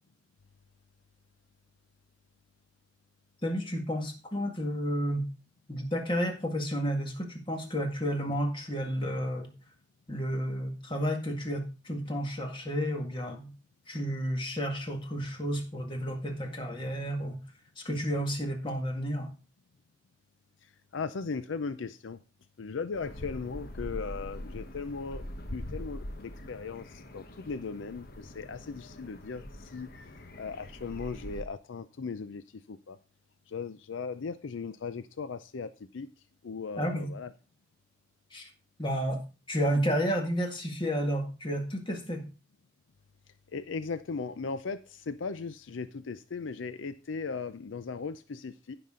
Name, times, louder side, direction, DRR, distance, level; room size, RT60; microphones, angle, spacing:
voice 1, 3.4-5.3 5.7-9.5 10.1-13.5 13.9-17.4 17.8-19.3 36.8-37.1 38.3-38.5 38.8-39.2 39.5-42.2, equal, 25° left, 3 dB, 1.8 m, -31 dB
voice 2, 20.9-22.2 22.6-29.9 30.4-32.4 32.7-33.0 33.5-36.1 36.4-37.3 43.5-48.7, left 4 dB, 85° left, 12 dB, 0.5 m, -37 dB
sound 1, 22.9-31.4, left 1 dB, 50° left, 1.2 m, -43 dB
15.0 x 6.0 x 3.7 m, 0.33 s
head